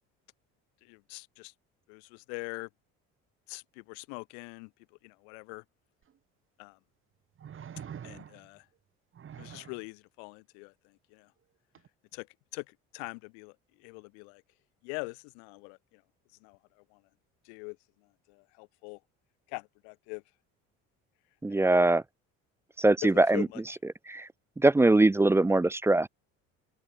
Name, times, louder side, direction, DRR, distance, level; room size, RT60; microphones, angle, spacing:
voice 1, 0.8-1.5 1.9-2.7 3.5-4.7 5.0-5.6 6.6-6.8 8.0-8.7 9.4-11.3 12.1-12.3 12.5-14.4 14.8-16.0 16.4-17.0 17.4-17.8 18.3-19.0 19.5-20.2 21.5-21.9 23.0-23.6, left 40 dB or more, 85° left, 1.3 m, -43 dB
sound 1, 6.0-6.1 7.4-8.6 9.1-9.8 11.7-11.9, right 8 dB, 40° right, 2.1 m, -45 dB
voice 2, 21.4-22.0 22.8-23.5 24.1-24.3 24.6-26.1, right 2 dB, 10° right, 0.4 m, -22 dB
open air
supercardioid pair, 90°, 32 cm